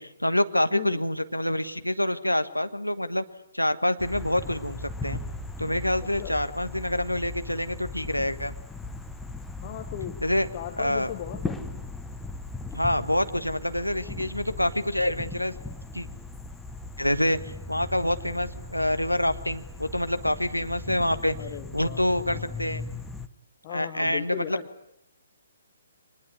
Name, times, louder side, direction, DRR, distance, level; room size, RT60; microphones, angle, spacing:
voice 1, 0.0-3.2 3.5-5.2 5.6-8.5 10.2-10.5 10.8-11.1 12.7-15.6 15.9-16.1 17.0-21.3 21.7-22.8 23.7-24.6, left 1 dB, 85° left, 10 dB, 1.4 m, -26 dB
voice 2, 0.7-1.0 6.2-6.4 9.6-10.2 10.5-11.6 21.4-22.6 23.6-24.7, left 11 dB, 30° left, 7 dB, 1.5 m, -37 dB
sound 1, 4.0-23.3, left 3 dB, 5° left, 1.0 m, -38 dB
24.5 x 20.5 x 9.6 m, 0.80 s
figure-of-eight pair, 130°, 0 cm